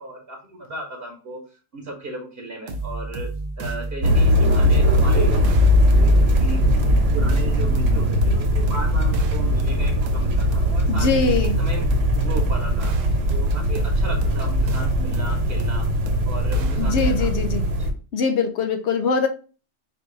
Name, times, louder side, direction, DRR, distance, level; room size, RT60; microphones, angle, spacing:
voice 1, 0.0-1.4 1.7-3.3 3.6-5.4 5.9-6.6 7.1-11.9 12.2-12.9 13.3-15.9 16.3-17.3 17.8-17.9, right 2 dB, 55° right, 1 dB, 1.0 m, -35 dB
sound 1, 2.7-17.5, right 2 dB, 85° right, 1.1 m, -31 dB
sound 2, 4.0-17.9, equal, 70° right, 1.2 m, -20 dB
voice 2, 10.9-11.6 16.8-17.7 18.1-19.3, left 5 dB, 65° left, 7 dB, 0.8 m, -22 dB
4.7 x 2.5 x 3.6 m, 0.36 s
omnidirectional pair, 1.3 m